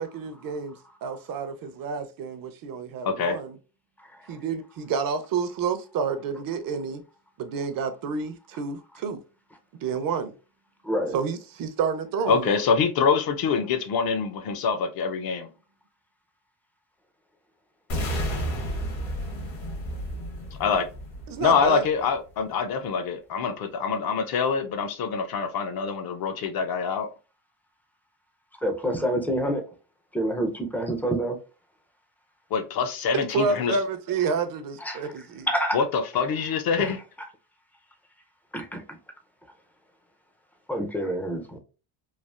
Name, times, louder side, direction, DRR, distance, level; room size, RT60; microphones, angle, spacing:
voice 1, 0.0-3.6 4.3-7.0 7.4-9.2 9.8-10.3 11.1-12.6 21.3-21.9 33.1-35.5, right 5 dB, 45° right, 0.5 m, -29 dB
voice 2, 3.1-3.4 12.3-15.5 20.6-20.8 21.4-27.1 32.5-33.8 35.7-37.0, left 5 dB, 50° left, 0.6 m, -25 dB
voice 3, 10.8-11.2 28.6-29.6 30.1-31.4 34.8-35.0 35.5-35.8 36.8-37.0 38.5-38.8 40.7-41.6, right 1 dB, 5° left, 0.4 m, -27 dB
sound 1, 17.9-21.9, equal, 65° left, 1.2 m, -32 dB
3.3 x 2.4 x 2.3 m
cardioid pair, 110°, 47 cm